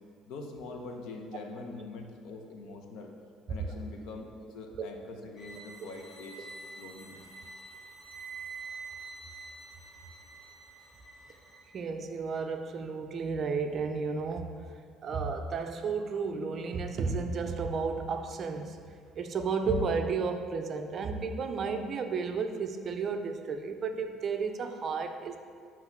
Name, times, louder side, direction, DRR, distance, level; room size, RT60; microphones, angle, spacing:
voice 1, 0.3-3.1 3.5-4.2 4.5-6.5 6.8-7.2, left 3 dB, 70° left, 3 dB, 0.8 m, -43 dB
sound 1, 5.3-11.7, right 4 dB, 25° left, 1.3 m, -47 dB
voice 2, 11.7-14.6 15.0-18.8 19.2-25.4, right 4 dB, 40° right, 6 dB, 0.4 m, -32 dB
7.9 x 3.0 x 5.8 m, 2.1 s
cardioid pair, 145°, 0 cm